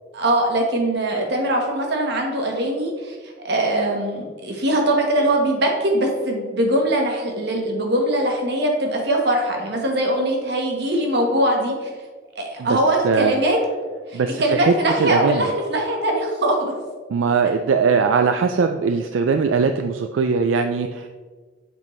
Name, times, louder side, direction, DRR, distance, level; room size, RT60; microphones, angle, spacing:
voice 1, 0.1-3.2 3.4-11.9 12.3-13.6 14.1-16.7, right 1 dB, 60° right, 1 dB, 1.3 m, -21 dB
voice 2, 12.6-13.3 14.1-14.7 15.0-15.5 17.1-21.1, right 5 dB, 80° right, 6 dB, 0.4 m, -20 dB
7.4 x 5.2 x 3.2 m, 1.4 s
head